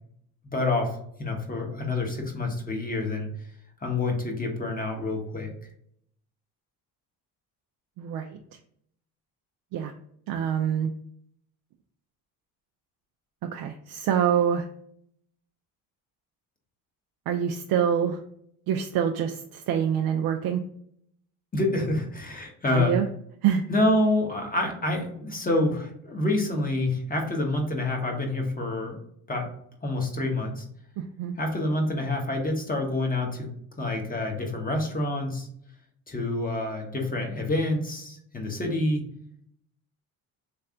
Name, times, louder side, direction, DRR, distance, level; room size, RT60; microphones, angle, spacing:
voice 1, 0.4-3.3 3.8-5.5 21.5-23.0 23.7-29.0 29.3-29.5 29.8-30.6 31.4-33.5 33.8-35.5 36.1-39.1, left 2 dB, 20° left, 1 dB, 1.2 m, -27 dB
voice 2, 8.0-8.4 9.7-9.9 10.3-10.9 13.4-14.6 17.3-18.2 18.7-20.6 22.7-23.1 23.4-23.6 31.0-31.3, right 8 dB, 55° right, 4 dB, 0.5 m, -25 dB
3.3 x 3.2 x 3.7 m, 0.68 s
supercardioid pair, 85°, 43 cm